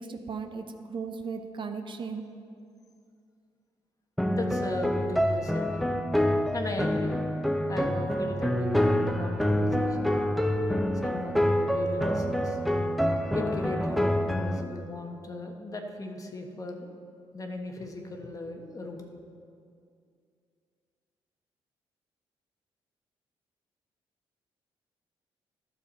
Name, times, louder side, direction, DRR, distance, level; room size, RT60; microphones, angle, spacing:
voice 1, 0.1-2.2, right 5 dB, 50° right, 6 dB, 0.8 m, -36 dB
sound 1, 4.2-14.6, equal, ahead, 0.6 m, -27 dB
voice 2, 4.3-5.9 6.5-7.2 7.7-10.2 11.0-12.6 13.3-16.9 17.3-19.1, left 2 dB, 35° left, 3 dB, 1.2 m, -37 dB
12.0 x 6.8 x 4.1 m, 2.4 s
supercardioid pair, 70°, 11 cm